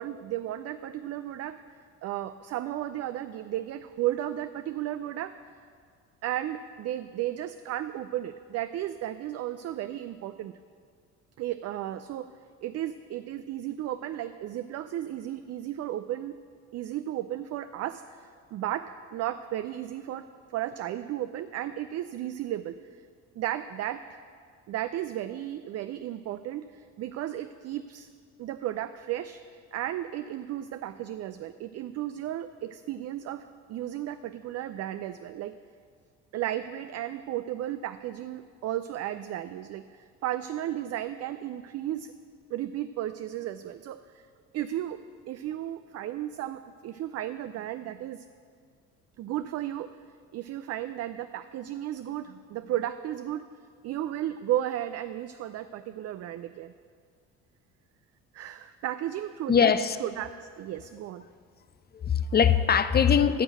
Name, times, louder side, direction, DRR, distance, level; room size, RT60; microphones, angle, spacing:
voice 1, 0.0-1.6 2.0-5.3 6.2-10.5 11.4-12.3 12.6-16.3 16.7-20.3 20.5-23.1 23.3-24.2 24.7-28.1 28.4-35.5 36.3-42.1 42.5-44.3 44.5-45.0 45.3-48.3 49.2-49.9 50.3-53.4 53.8-56.7 58.3-59.7 60.0-61.3, right 12 dB, 45° right, 11 dB, 0.4 m, -34 dB
voice 2, 59.5-60.0 61.9-63.4, left 7 dB, 25° left, 13 dB, 0.6 m, -22 dB
10.0 x 6.2 x 7.7 m, 2.1 s
hypercardioid pair, 60°, 38 cm